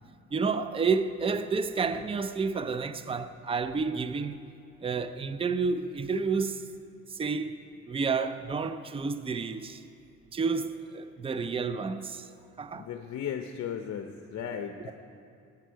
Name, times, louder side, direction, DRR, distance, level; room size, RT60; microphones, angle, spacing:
voice 1, 0.3-4.4 4.8-6.7 7.1-9.8 10.3-12.3 12.6-12.9, right 5 dB, 20° right, 0.5 m, -30 dB
voice 2, 12.7-14.9, left 8 dB, 60° left, 0.7 m, -36 dB
18.0 x 8.4 x 4.6 m
cardioid pair, 90°, 30 cm